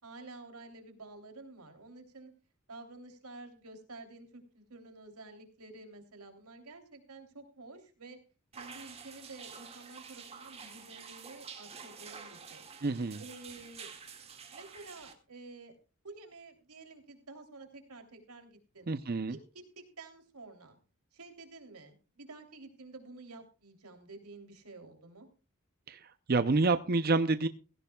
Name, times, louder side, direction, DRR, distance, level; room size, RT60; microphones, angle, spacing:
voice 1, 0.0-2.3 2.7-8.2 8.5-12.7 13.2-13.9 14.5-15.7 16.0-18.9 19.3-20.8 21.1-25.3, right 3 dB, 90° right, 6 dB, 3.1 m, -50 dB
sound 1, 8.5-15.1, right 6 dB, 25° right, 1.9 m, -49 dB
voice 2, 12.8-13.2 18.9-19.3 25.9-26.0 26.3-27.5, right 3 dB, 40° right, 11 dB, 0.5 m, -28 dB
16.5 x 16.5 x 2.3 m, 0.33 s
head